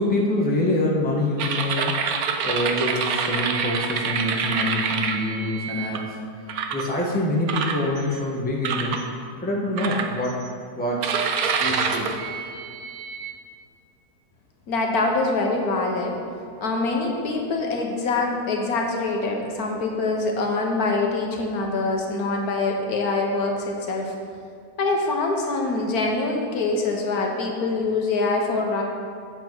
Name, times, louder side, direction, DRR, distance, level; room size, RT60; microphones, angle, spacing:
voice 1, 0.0-2.0 2.4-6.2 6.7-9.0 9.4-10.4 10.7-11.1 11.6-12.1, left 1 dB, 5° left, -2 dB, 0.9 m, -25 dB
sound 1, 1.4-6.0 6.5-6.9 7.5-8.2 8.6-9.0 9.8-10.5 11.0-13.3, right 6 dB, 70° right, 1.1 m, -27 dB
voice 2, 14.7-16.2 16.6-24.1 24.8-28.8, left 3 dB, 70° left, 1 dB, 1.5 m, -24 dB
8.4 x 7.6 x 4.6 m, 2.3 s
omnidirectional pair, 1.6 m